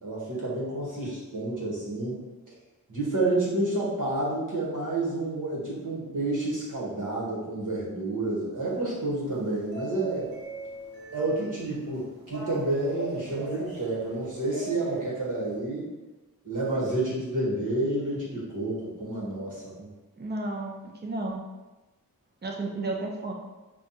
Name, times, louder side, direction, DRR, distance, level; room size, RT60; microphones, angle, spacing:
voice 1, 0.0-2.2 2.9-10.3 11.1-15.9 16.4-19.9, right 2 dB, 60° right, -5 dB, 1.4 m, -29 dB
sound 1, 8.6-15.6, right 1 dB, 80° right, 0.9 m, -42 dB
voice 2, 20.2-21.4 22.4-23.3, right 2 dB, 30° right, -1 dB, 0.6 m, -32 dB
5.4 x 2.4 x 2.8 m, 1.1 s
wide cardioid pair, 85°, 35 cm